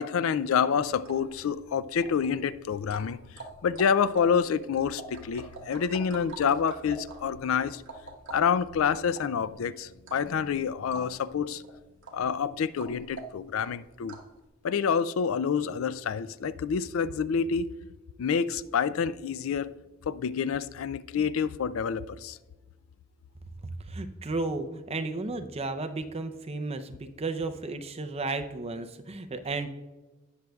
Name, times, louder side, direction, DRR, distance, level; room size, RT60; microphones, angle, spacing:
voice 1, 0.0-3.2 3.6-7.8 8.3-11.6 12.1-14.2 14.6-17.7 18.2-19.7 20.1-22.4, left 6 dB, 70° left, 0.4 m, -28 dB
sound 1, 0.8-14.4, right 3 dB, 60° right, 1.3 m, -46 dB
voice 2, 23.9-29.7, right 3 dB, 30° right, 0.6 m, -33 dB
18.0 x 6.4 x 2.3 m
head